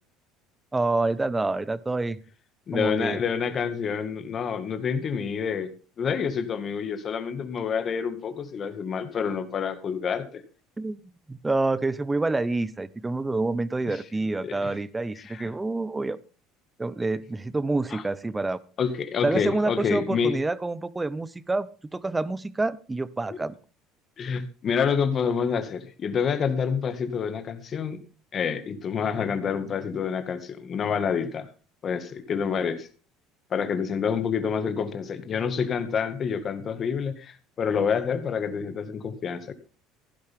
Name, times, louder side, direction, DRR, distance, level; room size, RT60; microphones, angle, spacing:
voice 1, 0.7-2.2 2.7-3.2 10.8-11.0 11.3-16.2 16.8-18.6 19.2-23.5, right 2 dB, 15° right, 17 dB, 0.9 m, -27 dB
voice 2, 2.7-5.7 6.0-10.4 13.9-14.0 14.4-14.7 15.2-15.5 17.9-18.0 18.8-20.4 23.3-23.4 24.2-28.0 28.3-31.5 31.8-32.9 33.5-39.5, left 6 dB, 40° left, 9 dB, 2.1 m, -28 dB
15.5 x 11.5 x 3.8 m, 0.36 s
supercardioid pair, 100°, 0 cm